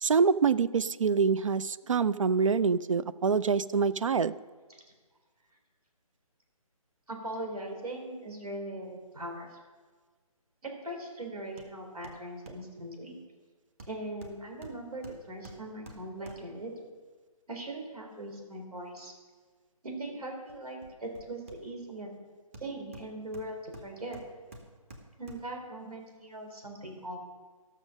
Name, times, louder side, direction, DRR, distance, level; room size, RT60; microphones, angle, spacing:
voice 1, 0.0-4.4, right 5 dB, 60° right, 16 dB, 0.5 m, -26 dB
voice 2, 7.1-9.5 10.6-13.1 13.9-16.9 17.5-19.1 19.8-22.1 22.6-24.2 25.2-27.2, right 1 dB, 85° right, 2 dB, 3.8 m, -40 dB
Hammer, 11.6-11.8 12.0-12.7 13.8-16.7 20.5-22.0 22.5-25.6 26.1-26.2, right 1 dB, 25° right, 1.0 m, -51 dB
14.5 x 6.3 x 6.4 m, 1.5 s
hypercardioid pair, 170°, 19 cm